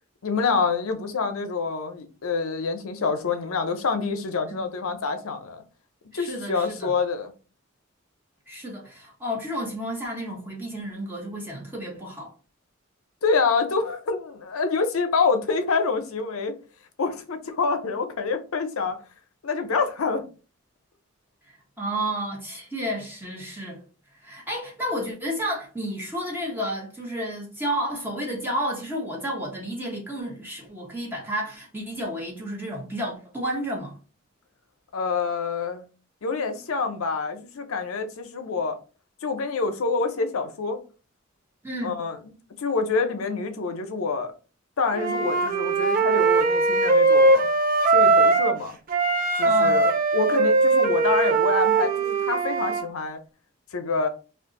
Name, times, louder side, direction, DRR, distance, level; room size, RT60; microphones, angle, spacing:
voice 1, 0.2-5.6 6.1-7.3 13.2-16.6 17.0-19.0 19.4-20.3 34.9-35.8 36.2-38.8 39.2-40.8 41.8-42.2 42.6-44.3 44.8-47.5 47.9-48.8 49.4-53.2 53.7-54.1, left 4 dB, 85° left, 0.6 m, -26 dB
voice 2, 6.1-6.9 8.5-12.3 21.5-23.8 24.2-34.0 41.6-41.9 49.4-49.8, equal, 10° right, 0.8 m, -31 dB
Wind instrument woodwind instrument, 44.9-48.6 48.9-52.8, right 3 dB, 40° right, 0.4 m, -20 dB
2.6 x 2.4 x 3.6 m
head